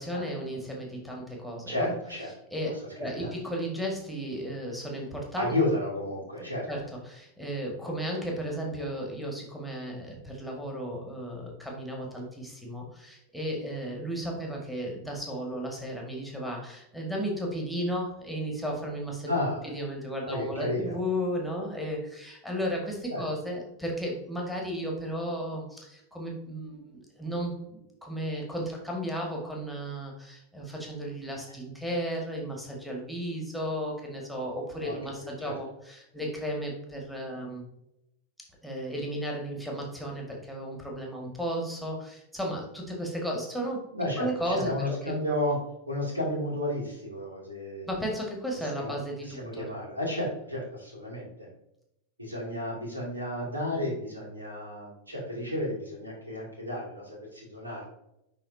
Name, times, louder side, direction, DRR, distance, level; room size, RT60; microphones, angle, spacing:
voice 1, 0.0-1.9 2.5-2.7 3.0-5.5 6.7-19.3 19.6-37.6 38.6-43.8 44.2-45.1 47.8-49.7, equal, ahead, -1 dB, 1.7 m, -34 dB
voice 2, 1.7-2.3 3.2-3.3 5.4-6.7 19.3-19.7 20.2-21.0 23.1-23.3 34.8-35.5 43.9-45.6 45.9-47.9 48.6-49.0 49.2-51.5 52.2-57.9, left 1 dB, 80° right, -3 dB, 2.4 m, -32 dB
11.0 x 3.7 x 2.7 m, 0.83 s
figure-of-eight pair, 90°, 0 cm